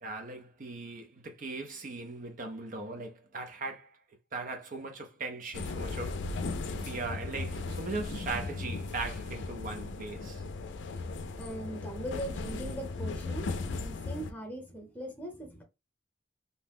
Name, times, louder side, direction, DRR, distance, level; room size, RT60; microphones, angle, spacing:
voice 1, 0.0-3.9 4.3-6.2 6.8-10.4, right 3 dB, 45° right, 0.5 m, -39 dB
sound 1, 5.5-14.3, left 3 dB, 85° left, 0.4 m, -37 dB
voice 2, 11.4-15.6, right 1 dB, 10° left, 0.9 m, -40 dB
2.7 x 2.1 x 3.5 m
head